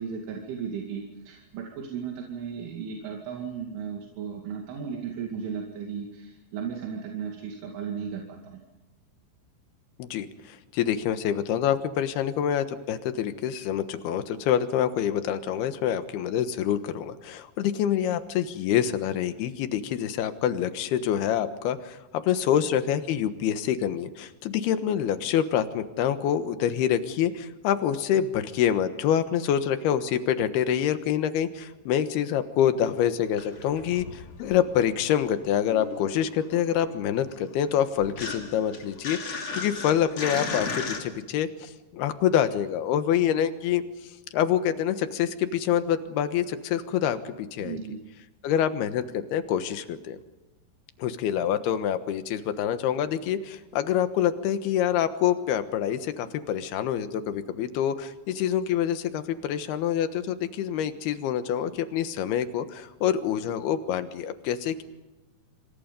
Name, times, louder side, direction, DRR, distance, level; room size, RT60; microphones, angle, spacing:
voice 1, 0.0-8.6 47.6-48.0, right 7 dB, 85° right, 0 dB, 4.9 m, -35 dB
voice 2, 10.0-43.8 44.3-47.8 48.4-50.2 51.0-64.8, left 9 dB, 70° left, 10 dB, 2.9 m, -26 dB
sound 1, 33.2-35.1 35.4-41.0, left 4 dB, 40° left, 3.6 m, -36 dB
26.5 x 26.5 x 5.4 m, 1.1 s
omnidirectional pair, 5.4 m